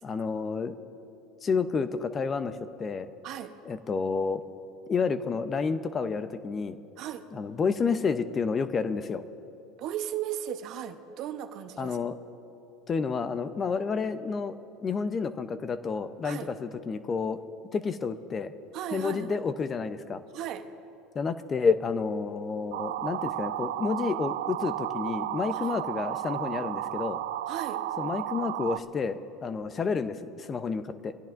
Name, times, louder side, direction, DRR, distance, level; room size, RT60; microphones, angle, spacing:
voice 1, 0.0-0.7 1.4-3.1 3.7-4.4 4.9-6.8 7.3-9.2 11.8-12.2 12.9-17.4 17.7-18.5 18.9-20.2 21.1-27.2 28.0-31.1, left 5 dB, 30° left, 11 dB, 0.7 m, -30 dB
voice 2, 9.8-12.0 16.2-16.5 18.7-19.4 20.3-20.7 25.5-25.8 27.5-27.8, right 10 dB, 60° right, 8 dB, 1.0 m, -36 dB
sound 1, 22.7-28.8, right 13 dB, 85° right, 0.4 m, -33 dB
24.0 x 16.5 x 2.6 m, 2.7 s
supercardioid pair, 100°, 0 cm